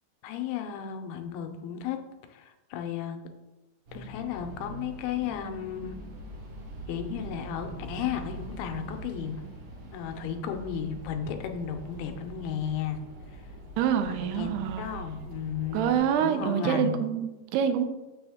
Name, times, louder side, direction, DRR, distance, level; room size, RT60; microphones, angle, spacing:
voice 1, 0.2-2.0 2.3-3.2 3.9-6.0 6.9-9.4 9.9-13.0 13.3-13.4 14.2-17.0, left 8 dB, 80° left, 5 dB, 2.5 m, -34 dB
sound 1, 3.9-16.0, right 2 dB, 55° right, 2.2 m, -43 dB
voice 2, 13.8-14.9 15.7-17.9, right 8 dB, 85° right, 8 dB, 2.6 m, -26 dB
6.9 x 6.2 x 3.5 m, 1.0 s
omnidirectional pair, 4.6 m